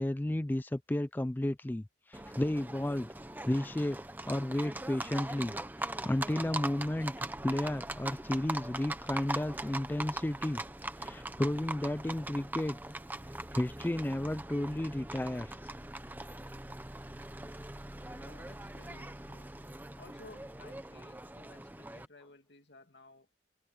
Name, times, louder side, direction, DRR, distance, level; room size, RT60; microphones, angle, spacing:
voice 1, 0.0-3.1 3.5-4.0 4.3-5.5 5.8-7.1 7.4-10.6 11.0-12.8 13.5-15.7, left 1 dB, 10° left, 0.3 m, -33 dB
Livestock farm animals working animals, 2.1-22.0, right 2 dB, 10° right, 0.9 m, -41 dB
voice 2, 18.0-19.5 20.0-23.3, left 2 dB, 80° left, 2.3 m, -57 dB
head